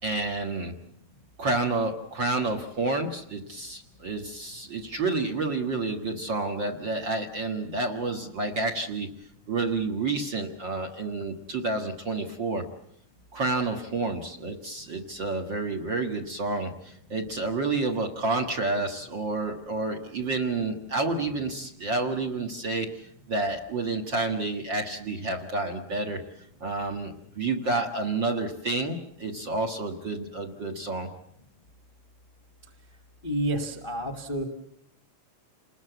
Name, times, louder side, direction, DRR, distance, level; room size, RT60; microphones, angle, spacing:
voice 1, 0.0-0.7 1.4-9.1 9.5-12.6 13.3-26.2 26.6-31.1, right 3 dB, 40° right, 7 dB, 2.0 m, -29 dB
voice 2, 33.2-34.4, right 1 dB, 25° left, 6 dB, 1.2 m, -29 dB
29.0 x 20.5 x 8.2 m, 0.73 s
omnidirectional pair, 4.0 m